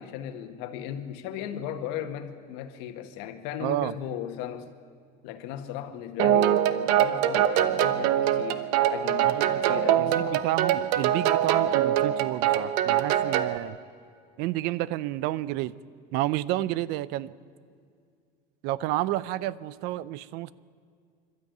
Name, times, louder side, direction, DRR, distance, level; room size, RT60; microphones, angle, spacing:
voice 1, 0.0-4.7 5.2-9.3 9.6-10.4, left 9 dB, 70° left, 7 dB, 1.7 m, -36 dB
voice 2, 3.6-3.9 9.2-9.7 10.0-13.8 14.4-15.8 16.1-17.3 18.6-20.5, right 15 dB, 60° right, 19 dB, 0.6 m, -30 dB
sound 1, 6.2-13.6, right 11 dB, 85° right, 1.0 m, -23 dB
26.0 x 12.5 x 9.2 m, 2.2 s
cardioid pair, 175°, 19 cm